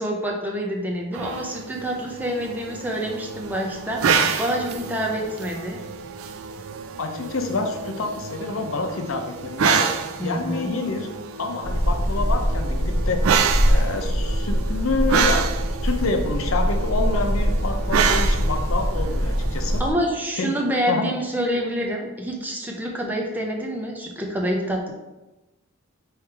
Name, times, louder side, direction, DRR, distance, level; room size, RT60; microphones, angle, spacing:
voice 1, 0.0-5.8 10.2-10.7 19.8-24.9, equal, 10° right, -1 dB, 0.6 m, -27 dB
sound 1, 1.1-19.8, right 6 dB, 85° right, 0.3 m, -28 dB
voice 2, 7.0-9.9 10.2-11.1 11.4-13.2 13.7-19.8 20.4-20.5 20.9-21.1, left 3 dB, 80° left, 4 dB, 0.6 m, -27 dB
sound 2, 11.6-19.9, equal, 15° left, 1.0 m, -23 dB
3.4 x 3.2 x 4.5 m, 1.1 s
head